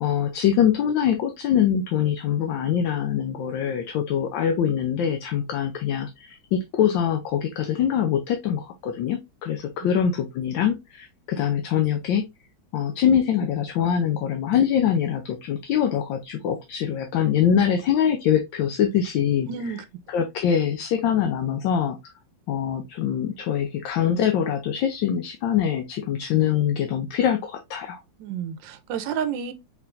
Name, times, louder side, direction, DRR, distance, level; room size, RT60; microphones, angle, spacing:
voice 1, 0.0-12.2 12.7-19.5 20.1-22.1 22.5-28.0, left 9 dB, 75° left, 1.3 m, -23 dB
voice 2, 19.5-19.8 28.2-29.5, right 7 dB, 75° right, 1.3 m, -30 dB
4.7 x 3.4 x 2.5 m
omnidirectional pair, 2.2 m